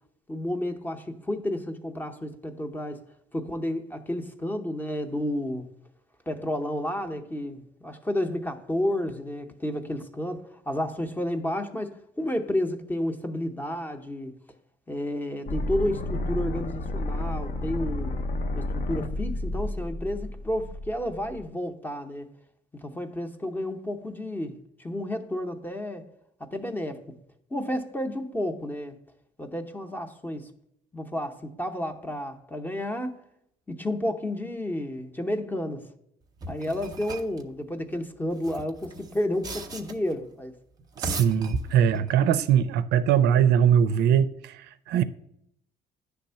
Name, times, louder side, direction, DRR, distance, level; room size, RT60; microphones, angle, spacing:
voice 1, 0.3-3.0 3.3-5.7 6.3-14.4 14.9-18.2 18.5-22.3 22.7-26.0 26.4-27.0 27.5-29.0 29.4-30.5 30.9-33.2 33.7-35.9 36.5-40.5, left 1 dB, 10° left, 0.7 m, -31 dB
sound 1, 15.5-21.4, left 1 dB, 50° left, 0.7 m, -31 dB
sound 2, 36.4-37.4 38.3-40.1 40.8-42.1, right 2 dB, 25° right, 0.7 m, -37 dB
voice 2, 41.0-44.6 44.9-45.0, right 9 dB, 80° right, 0.5 m, -21 dB
10.0 x 3.4 x 5.5 m
cardioid pair, 110°, 17 cm